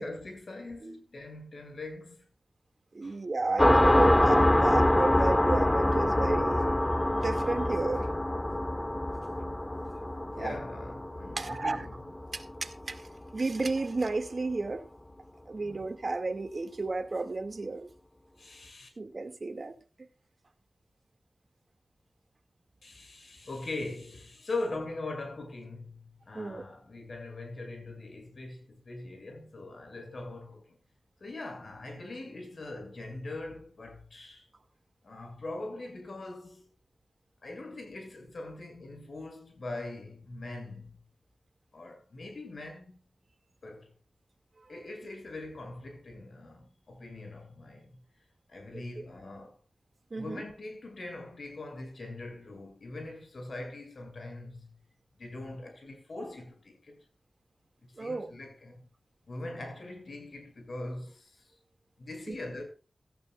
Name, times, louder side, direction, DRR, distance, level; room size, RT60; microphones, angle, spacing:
voice 1, 0.0-2.3 3.0-3.2 10.4-12.0 15.6-15.8 18.4-18.9 22.8-30.8 31.2-34.4 35.0-36.8 37.4-41.0 41.7-43.0 43.6-43.9 44.7-48.0 48.5-49.6 50.1-54.7 55.2-57.0 58.0-58.9 59.3-61.5 62.0-62.6, left 2 dB, 70° left, 6.5 m, -41 dB
voice 2, 2.9-6.8 7.1-8.1 10.3-10.6 11.4-11.8 12.3-14.8 15.5-17.9 19.0-19.8 26.3-26.6 48.7-48.8 50.1-50.4 58.0-58.3 62.3-62.4, right 3 dB, 55° right, 2.1 m, -33 dB
sound 1, 3.6-12.8, left 1 dB, 20° left, 0.5 m, -25 dB
16.5 x 15.0 x 2.4 m
cardioid pair, 45°, 0 cm